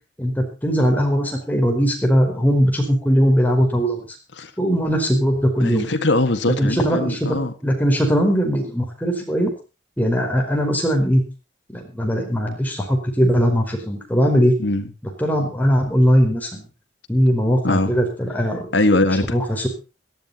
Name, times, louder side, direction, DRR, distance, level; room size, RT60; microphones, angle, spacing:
voice 1, 0.2-4.0 4.6-5.9 6.5-7.4 7.6-9.5 10.0-11.2 11.7-14.5 15.2-16.6 17.1-18.7 19.3-19.7, equal, 10° left, 4.7 m, -19 dB
voice 2, 5.6-7.5 14.6-14.9 17.6-17.9 18.7-19.4, left 2 dB, 75° left, 1.8 m, -21 dB
17.5 x 13.0 x 4.2 m
head